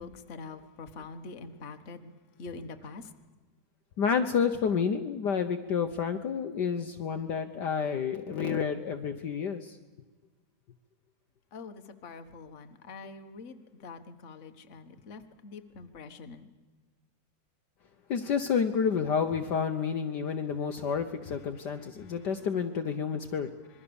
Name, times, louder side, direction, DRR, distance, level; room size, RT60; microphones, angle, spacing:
voice 1, 0.0-2.1 2.4-3.1 11.5-16.5 21.8-22.2, left 4 dB, 40° left, 7 dB, 1.5 m, -45 dB
voice 2, 4.0-9.8 18.1-23.5, left 6 dB, 60° left, 6 dB, 1.5 m, -29 dB
26.0 x 22.0 x 7.0 m, 1.3 s
omnidirectional pair, 2.2 m